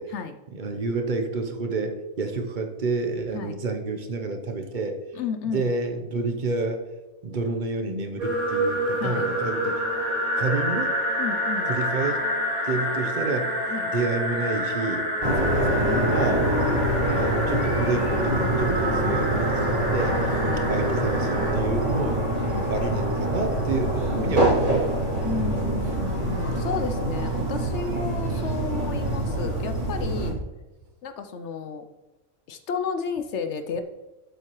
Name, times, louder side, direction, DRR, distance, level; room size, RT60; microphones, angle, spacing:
voice 1, 0.0-0.4 3.3-3.6 5.1-5.7 9.0-9.3 11.2-11.7 13.7-13.9 15.4-16.7 19.1-19.2 20.4-20.6 22.5-22.7 25.2-30.4 31.0-31.8 32.5-33.8, left 6 dB, 65° left, 9 dB, 0.7 m, -32 dB
voice 2, 0.5-5.0 5.5-6.8 7.2-10.0 10.4-10.9 11.7-12.2 12.6-13.6 13.9-15.1 15.7-16.5 17.0-20.4 20.7-22.2 22.7-25.3 30.2-30.4, right 3 dB, 45° right, 5 dB, 0.7 m, -29 dB
sound 1, 8.2-21.5, equal, 80° right, 2.7 m, -28 dB
sound 2, 15.2-30.3, right 1 dB, 25° right, 2.5 m, -25 dB
8.0 x 7.6 x 3.0 m, 1.1 s
omnidirectional pair, 1.5 m